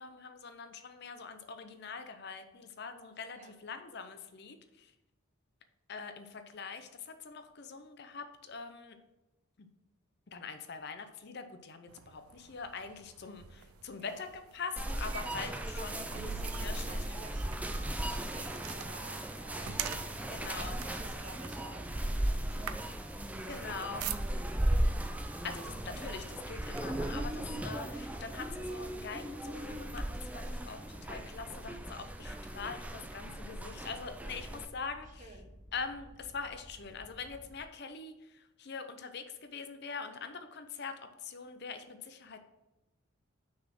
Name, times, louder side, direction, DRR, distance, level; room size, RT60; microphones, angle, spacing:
voice 1, 0.0-4.9 5.9-9.0 9.6-9.7 10.3-16.3 16.6-17.0 20.3-20.8 23.5-24.1 25.4-35.3 35.7-42.4, left 5 dB, 50° left, 8 dB, 0.6 m, -43 dB
sound 1, 11.9-24.7 25.5-25.8 26.2-27.2 27.8-27.9 28.3-30.0, right 8 dB, 85° right, 0.5 m, -46 dB
sound 2, 14.8-34.6, right 1 dB, 5° right, 0.3 m, -37 dB
voice 2, 15.6-19.7 20.1-22.7 23.4-24.0 27.0-27.6 35.2-35.5 40.1-40.3, right 3 dB, 35° right, 3 dB, 0.9 m, -52 dB
sound 3, 19.2-37.6, equal, 65° left, 2.4 m, -53 dB
6.0 x 4.2 x 5.9 m, 0.99 s
head